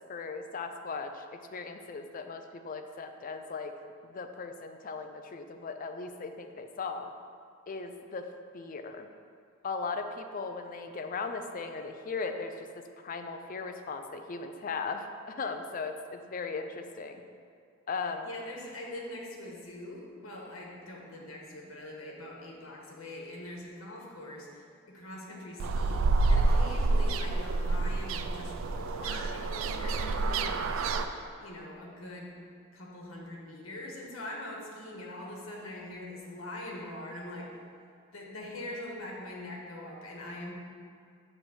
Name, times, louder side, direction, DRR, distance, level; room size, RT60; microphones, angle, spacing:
voice 1, 0.0-3.7 4.0-7.1 7.7-8.3 8.5-9.1 9.6-12.7 13.0-17.2 17.9-18.3, left 4 dB, 40° left, 7 dB, 0.4 m, -38 dB
voice 2, 18.2-31.1 31.4-32.3 32.7-37.5 38.1-40.5, left 1 dB, 85° left, -2 dB, 1.3 m, -43 dB
sound 1, 25.6-31.1, right 3 dB, 75° right, 0.4 m, -28 dB
7.4 x 3.2 x 6.2 m, 2.3 s
head